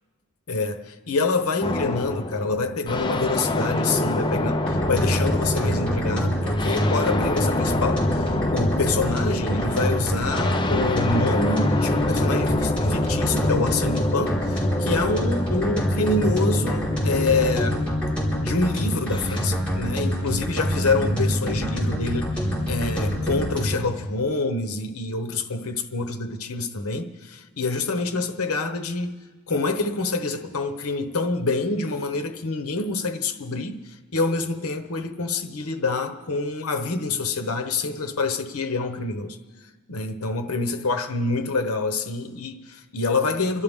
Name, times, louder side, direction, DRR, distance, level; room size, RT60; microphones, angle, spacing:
voice 1, 0.5-17.8 18.4-29.2 29.5-39.4 39.9-43.6, left 3 dB, 80° left, 1.0 m, -26 dB
sound 1, 1.6-19.7, left 2 dB, 20° left, 0.6 m, -27 dB
sound 2, 4.7-23.9, equal, 5° left, 4.8 m, -26 dB
27.5 x 12.5 x 3.7 m
head